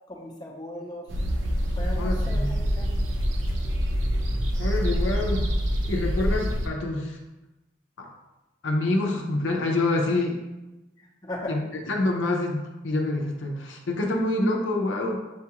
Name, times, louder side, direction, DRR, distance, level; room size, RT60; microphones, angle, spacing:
voice 1, 0.1-1.1 1.8-2.9 11.0-11.6, left 1 dB, 20° left, -3 dB, 0.7 m, -37 dB
sound 1, 1.1-6.7, equal, 85° right, 0.6 m, -26 dB
voice 2, 2.0-2.6 4.6-5.5 5.9-7.2 8.0-8.1 8.6-10.4 11.5-11.6 11.9-15.2, left 2 dB, 80° left, 1 dB, 0.6 m, -26 dB
6.7 x 2.3 x 2.9 m, 1.0 s
head